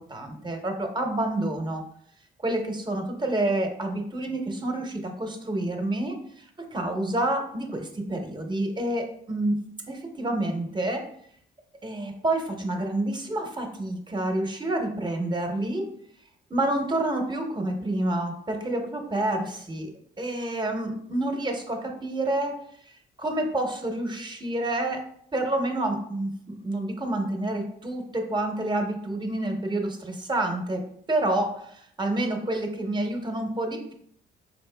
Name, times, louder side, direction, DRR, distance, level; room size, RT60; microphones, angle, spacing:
voice 1, 0.1-1.8 2.4-6.4 6.7-9.6 9.9-11.0 11.8-15.9 16.5-19.9 20.2-22.6 23.2-25.0 25.3-30.8 31.1-33.9, right 1 dB, 20° right, 3 dB, 0.9 m, -28 dB
5.1 x 4.2 x 2.2 m, 0.67 s
cardioid pair, 90°, 20 cm